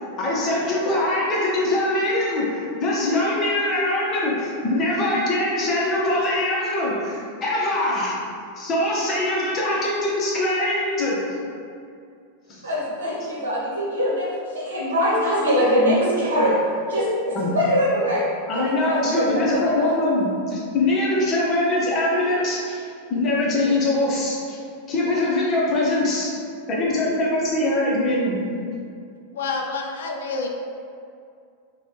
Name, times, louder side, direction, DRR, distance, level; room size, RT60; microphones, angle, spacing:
voice 1, 0.0-8.2 8.6-11.4 12.5-12.6 17.4-17.5 18.5-24.6 24.9-26.3 26.7-28.4, left 1 dB, 30° left, -5 dB, 0.8 m, -23 dB
voice 2, 12.6-16.6 16.9-18.2 18.5-19.9, equal, 65° right, -6 dB, 0.9 m, -23 dB
voice 3, 29.3-30.5, left 3 dB, 60° left, 1 dB, 0.3 m, -28 dB
2.9 x 2.2 x 3.3 m, 2.3 s
figure-of-eight pair, 90°, 0 cm